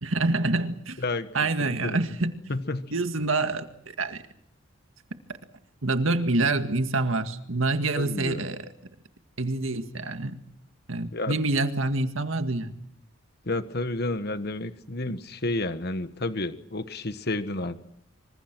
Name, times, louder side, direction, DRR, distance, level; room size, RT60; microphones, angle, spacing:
voice 1, 0.0-1.0 1.3-2.3 2.9-4.2 5.8-8.7 9.4-10.4 10.9-12.7, right 2 dB, 75° right, 8 dB, 1.9 m, -26 dB
voice 2, 1.0-2.0 2.5-2.9 7.9-8.4 11.1-11.4 13.4-17.8, left 2 dB, 50° left, 10 dB, 1.4 m, -31 dB
27.0 x 25.5 x 6.1 m, 0.68 s
head